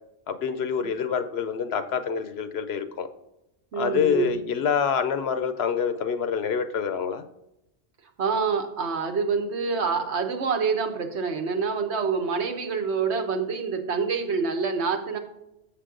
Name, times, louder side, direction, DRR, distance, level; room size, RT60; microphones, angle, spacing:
voice 1, 0.3-3.1 3.7-7.2, left 7 dB, 65° left, 10 dB, 0.9 m, -26 dB
voice 2, 3.7-4.4 8.2-15.2, right 5 dB, 70° right, 5 dB, 1.2 m, -26 dB
7.0 x 6.7 x 3.7 m, 0.89 s
omnidirectional pair, 1.2 m